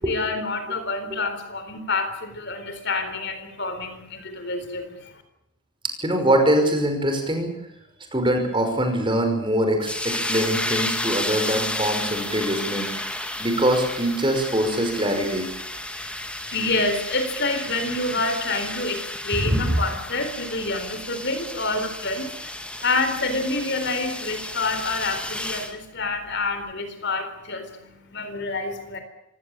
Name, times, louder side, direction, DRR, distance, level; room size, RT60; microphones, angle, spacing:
voice 1, 0.0-5.1 16.5-29.0, left 3 dB, 50° left, 9 dB, 4.0 m, -28 dB
voice 2, 6.0-7.5 8.1-13.1 13.4-15.5 19.3-19.8, right 1 dB, 20° right, 5 dB, 5.6 m, -23 dB
sound 1, 9.8-25.7, left 1 dB, 5° left, 1.9 m, -32 dB
26.0 x 17.0 x 8.9 m, 0.83 s
head